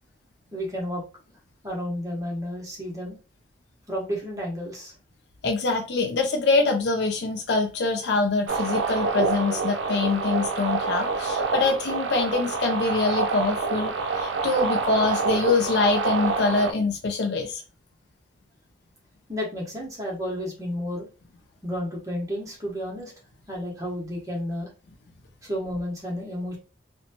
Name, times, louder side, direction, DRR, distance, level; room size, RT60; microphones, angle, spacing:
voice 1, 0.5-1.0 1.6-3.2 3.9-4.9 19.3-21.1 21.6-23.1 23.5-24.7 25.4-26.6, equal, 20° right, -2 dB, 0.9 m, -31 dB
voice 2, 5.4-17.6, left 3 dB, 70° left, 3 dB, 0.4 m, -24 dB
sound 1, 8.5-16.7, right 4 dB, 80° right, 0.4 m, -27 dB
2.7 x 2.1 x 2.8 m, 0.33 s
head